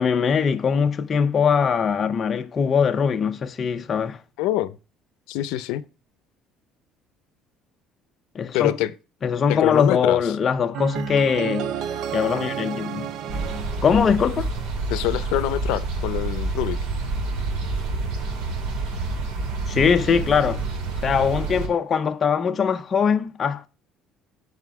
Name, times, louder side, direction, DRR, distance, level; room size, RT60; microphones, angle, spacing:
voice 1, 0.0-4.2 8.3-8.8 9.2-11.7 12.1-13.1 13.8-14.5 19.7-20.6 21.0-23.7, left 6 dB, 25° left, 0.5 m, -21 dB
voice 2, 4.4-4.8 5.3-5.8 8.5-8.9 9.5-10.3 14.9-16.8, left 14 dB, 85° left, 0.5 m, -25 dB
sound 1, 10.7-14.8, right 8 dB, 50° right, 0.4 m, -31 dB
sound 2, 13.3-21.7, right 3 dB, 75° right, 2.4 m, -28 dB
8.0 x 5.0 x 4.7 m
cardioid pair, 175°, 0 cm